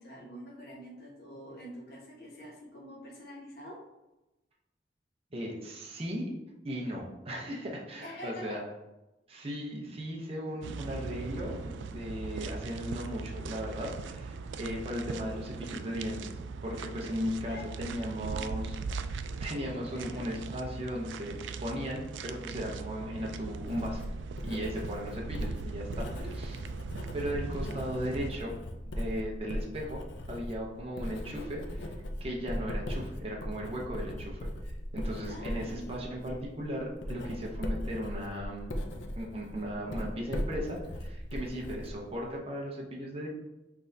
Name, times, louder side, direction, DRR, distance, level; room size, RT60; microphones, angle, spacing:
voice 1, 0.0-3.8 8.0-8.6 17.4-17.6 18.2-18.5 19.9-20.3 26.1-26.3 35.3-36.0, equal, 60° left, -4 dB, 1.2 m, -46 dB
voice 2, 5.3-6.3 6.6-8.6 9.3-16.4 16.6-18.8 19.4-24.0 24.4-26.6 27.1-28.5 29.0-30.0 30.3-31.9 32.2-38.7 39.2-43.3, equal, 35° right, -2 dB, 0.7 m, -37 dB
sound 1, 10.6-28.3, right 4 dB, 90° right, 0.3 m, -40 dB
Writing, 23.5-42.4, equal, 85° left, 0.6 m, -39 dB
6.0 x 3.2 x 2.7 m, 0.99 s
head